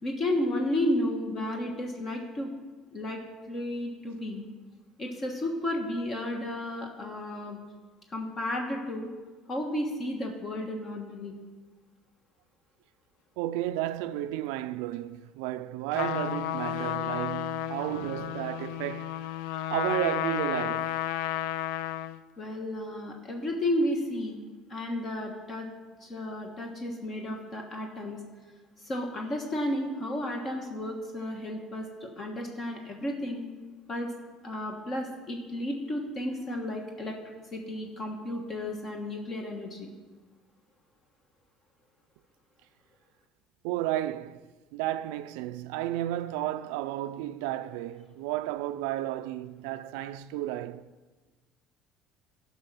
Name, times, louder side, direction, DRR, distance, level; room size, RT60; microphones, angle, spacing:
voice 1, 0.0-2.5 2.9-3.2 3.5-4.5 5.0-7.6 8.1-9.1 9.5-11.3 22.4-24.4 24.7-25.7 26.0-28.2 28.8-33.4 33.9-34.1 34.4-39.9, left 1 dB, 35° left, 1.3 m, -32 dB
voice 2, 13.4-19.2 19.7-21.0 43.6-44.5 44.7-50.9, right 14 dB, 85° right, 0.3 m, -32 dB
Trumpet, 15.9-22.2, left 12 dB, 85° left, 0.4 m, -32 dB
11.5 x 5.5 x 6.2 m
cardioid pair, 110°, 0 cm